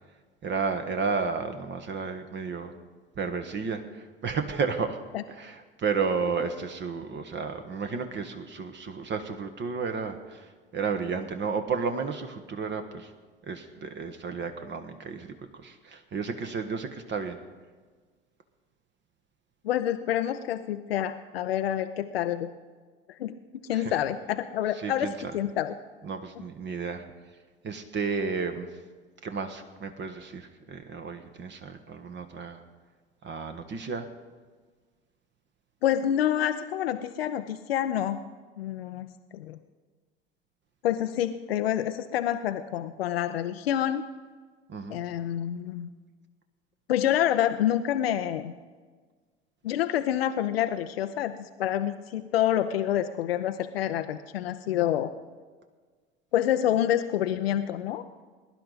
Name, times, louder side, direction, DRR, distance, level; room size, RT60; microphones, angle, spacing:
voice 1, 0.4-2.7 3.2-3.8 4.2-5.0 5.4-10.5 10.7-13.1 13.5-15.3 15.6-17.4 23.7-23.9 24.8-25.1 26.0-27.0 27.6-28.7 29.2-32.6 33.2-34.1 44.7-45.0, right 5 dB, 35° right, 7 dB, 1.2 m, -32 dB
voice 2, 19.6-22.5 23.1-23.3 23.6-25.7 26.4-26.5 35.8-38.2 38.6-39.1 39.3-39.6 40.8-44.1 44.9-45.9 46.9-48.5 49.6-55.1 56.3-58.0, left 11 dB, 80° left, 9 dB, 0.6 m, -27 dB
21.0 x 11.0 x 4.1 m, 1.5 s
hypercardioid pair, 70°, 30 cm